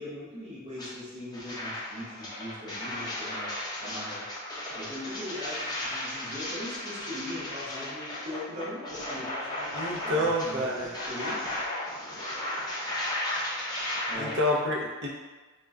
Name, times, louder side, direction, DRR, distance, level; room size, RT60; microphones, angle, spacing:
voice 1, 0.0-4.3 4.7-11.4 14.1-14.4, left 1 dB, 30° right, -9 dB, 0.9 m, -40 dB
sound 1, 0.8-0.9 1.3-14.4, left 1 dB, 20° left, 0.5 m, -35 dB
voice 2, 9.7-10.9 14.2-15.1, left 1 dB, 55° right, -3 dB, 0.5 m, -28 dB
2.2 x 2.1 x 3.5 m, 1.3 s
head